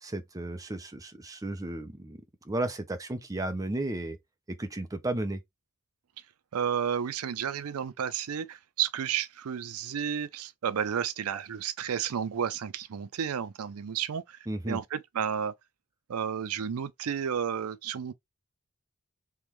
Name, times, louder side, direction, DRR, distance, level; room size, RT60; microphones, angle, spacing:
voice 1, 0.0-2.2 2.5-4.2 4.5-5.4 14.5-14.8, right 2 dB, 15° right, 0.6 m, -33 dB
voice 2, 6.5-14.4 14.7-15.5 16.1-18.1, right 8 dB, 80° right, 0.4 m, -32 dB
3.6 x 3.0 x 3.1 m
head